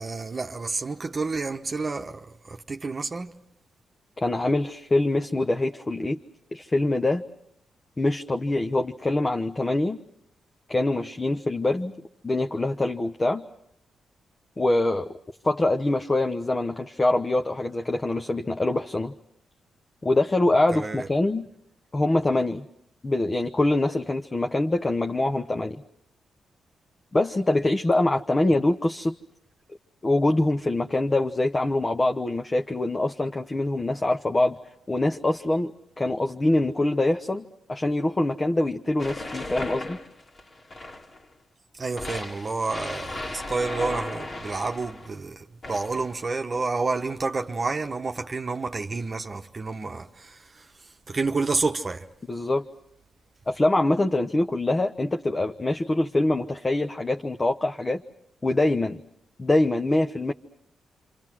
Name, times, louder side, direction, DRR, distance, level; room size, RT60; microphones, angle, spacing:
voice 1, 0.0-3.3 20.7-21.1 41.8-50.4 51.1-52.0, right 3 dB, 40° right, 1.1 m, -29 dB
voice 2, 4.2-6.2 6.5-7.2 8.0-10.0 10.7-11.9 12.2-13.4 14.6-15.1 15.4-19.1 20.0-21.5 21.9-22.7 23.0-25.8 27.1-29.1 30.0-34.6 34.9-35.7 36.0-40.0 52.3-52.7 53.5-58.0 58.4-59.0 59.4-60.3, left 2 dB, 30° left, 1.0 m, -24 dB
sound 1, 39.0-41.2 42.0-45.1 45.6-46.2, left 2 dB, 50° left, 2.7 m, -36 dB
27.0 x 27.0 x 6.1 m
supercardioid pair, 60°, 0 cm